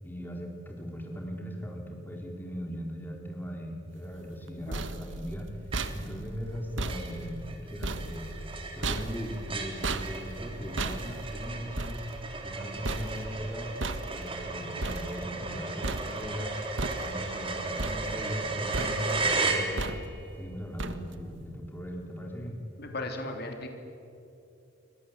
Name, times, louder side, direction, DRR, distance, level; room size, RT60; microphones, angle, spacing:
voice 1, 0.0-5.6 5.9-12.0 12.4-13.7 14.1-16.5 17.0-19.9 20.4-22.6, equal, 10° left, 1 dB, 4.2 m, -39 dB
sound 1, 4.3-15.6 15.8-16.4 16.8-17.4 17.8-18.5 18.7-19.3 19.8-20.3 20.8-21.3, right 2 dB, 70° right, 1.6 m, -36 dB
sound 2, 5.7-6.2 6.5-6.6 6.9-20.2, right 3 dB, 25° right, 3.4 m, -35 dB
voice 2, 22.8-23.7, left 2 dB, 55° left, 4 dB, 3.3 m, -36 dB
28.5 x 25.0 x 8.3 m, 2.8 s
head